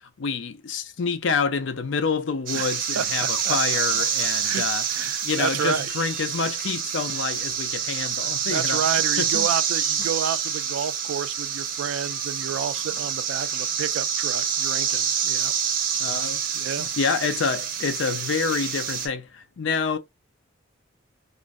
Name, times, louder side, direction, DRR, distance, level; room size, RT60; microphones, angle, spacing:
voice 1, 0.2-4.8 5.2-8.8 9.2-9.5 16.0-16.4 16.8-20.0, left 5 dB, 65° left, 0.5 m, -27 dB
sound 1, 2.5-19.1, right 8 dB, 45° right, 0.6 m, -27 dB
voice 2, 2.5-3.6 3.9-4.1 4.4-5.9 8.4-15.5 16.5-16.9, right 7 dB, 85° right, 0.3 m, -30 dB
3.1 x 2.5 x 2.4 m
head